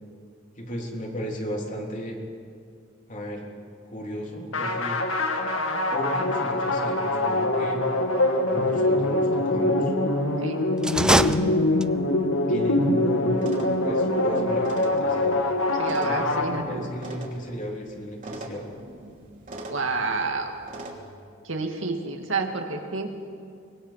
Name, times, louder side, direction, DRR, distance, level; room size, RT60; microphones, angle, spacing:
voice 1, 0.6-2.2 3.1-3.5 3.9-5.0 5.9-7.8 8.5-9.9 10.9-11.9 12.5-13.5 13.8-15.3 16.0-18.6, equal, 40° left, 0 dB, 3.3 m, -35 dB
sound 1, 4.5-17.1, left 1 dB, 85° left, 2.0 m, -24 dB
sound 2, 10.8-12.2, right 1 dB, 5° right, 0.4 m, -23 dB
sound 3, 13.4-21.0, right 2 dB, 40° right, 3.0 m, -43 dB
voice 2, 15.8-16.9 19.7-20.6 21.4-23.1, right 3 dB, 75° right, 3 dB, 2.2 m, -29 dB
24.5 x 21.0 x 5.8 m, 2.2 s
head